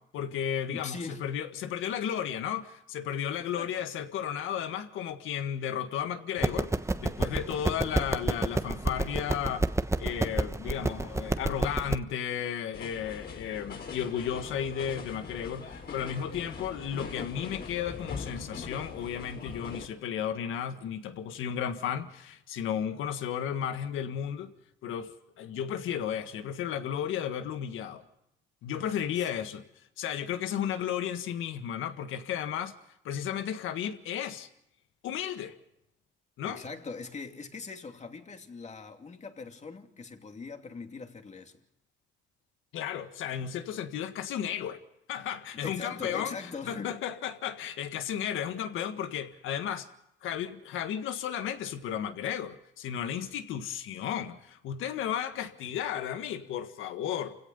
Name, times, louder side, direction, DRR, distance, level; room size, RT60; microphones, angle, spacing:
voice 1, 0.1-6.7 7.0-9.6 10.0-24.5 24.8-28.0 28.6-29.6 30.0-32.7 33.0-34.5 35.0-35.6 36.4-36.6 42.7-44.8 45.1-49.9 50.2-57.4, left 9 dB, 85° left, 1.7 m, -34 dB
voice 2, 0.7-1.2 3.6-3.9 28.9-29.5 36.4-41.6 45.5-47.0, left 4 dB, 35° left, 2.7 m, -41 dB
sound 1, 6.4-11.9, right 2 dB, 15° right, 1.2 m, -30 dB
sound 2, 12.7-19.8, left 5 dB, 55° left, 5.4 m, -41 dB
29.0 x 17.0 x 5.4 m
cardioid pair, 90°, 20 cm